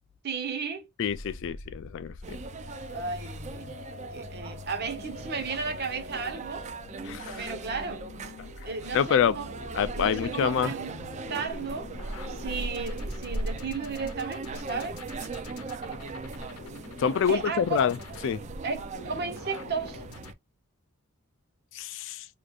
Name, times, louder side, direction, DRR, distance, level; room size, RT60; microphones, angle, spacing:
voice 1, 0.2-0.9 2.9-3.8 4.1-6.7 7.4-8.1 8.6-9.5 9.9-11.0 11.3-11.9 12.3-15.0 17.3-17.9 18.6-20.0, right 4 dB, 50° right, 0.9 m, -34 dB
voice 2, 1.0-2.4 7.0-7.5 8.9-9.4 9.8-10.7 17.0-18.0 18.2-18.4 21.7-22.3, left 7 dB, 60° left, 0.3 m, -26 dB
sound 1, 1.1-20.3, left 3 dB, 90° left, 0.7 m, -45 dB
sound 2, 2.2-20.3, right 3 dB, 30° right, 0.4 m, -39 dB
5.0 x 2.5 x 2.4 m
head